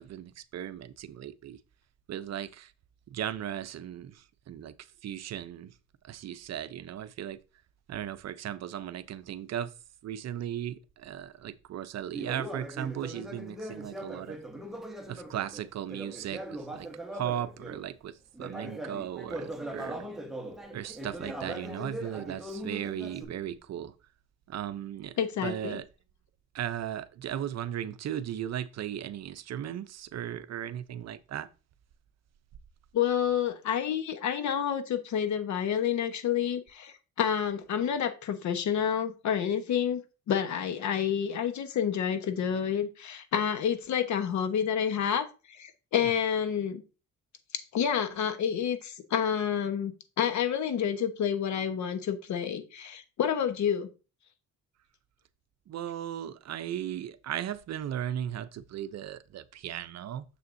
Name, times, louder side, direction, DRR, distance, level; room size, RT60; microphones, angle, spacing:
voice 1, 0.0-1.6 2.1-2.7 3.1-4.7 5.0-5.7 6.0-7.4 7.9-9.7 10.0-14.4 15.1-20.1 20.7-23.9 24.5-25.9 26.5-31.5 46.0-46.1 55.7-60.2, right 10 dB, 60° right, 0.6 m, -37 dB
Conversation, 12.1-17.9 18.3-23.2, right 1 dB, ahead, 1.2 m, -40 dB
voice 2, 25.2-25.8 32.9-40.0 40.3-46.8 47.5-49.9 50.2-53.9, left 8 dB, 70° left, 1.1 m, -29 dB
7.0 x 6.9 x 2.6 m
cardioid pair, 90°, 30 cm